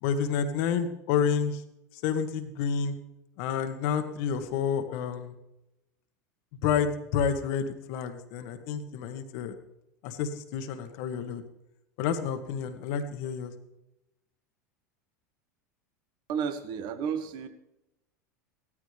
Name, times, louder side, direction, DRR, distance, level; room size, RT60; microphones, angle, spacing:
voice 1, 0.0-1.6 1.9-2.9 3.4-5.3 6.6-9.5 10.0-11.4 12.0-13.5, left 7 dB, 60° left, 8 dB, 1.6 m, -29 dB
voice 2, 16.3-17.5, right 7 dB, 55° right, 9 dB, 1.6 m, -32 dB
16.5 x 13.5 x 3.4 m, 0.89 s
hypercardioid pair, 90°, 9 cm